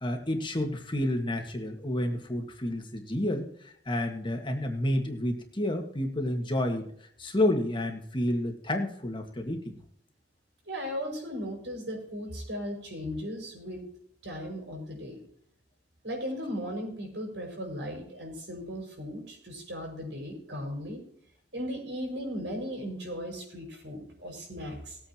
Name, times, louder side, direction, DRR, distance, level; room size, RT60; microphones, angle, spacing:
voice 1, 0.0-6.9 7.2-9.7, left 1 dB, 25° left, 3 dB, 1.8 m, -30 dB
voice 2, 10.7-13.8 14.2-15.2 16.0-21.0 21.5-25.0, equal, 80° right, 1 dB, 5.8 m, -37 dB
20.5 x 8.5 x 3.0 m, 0.65 s
head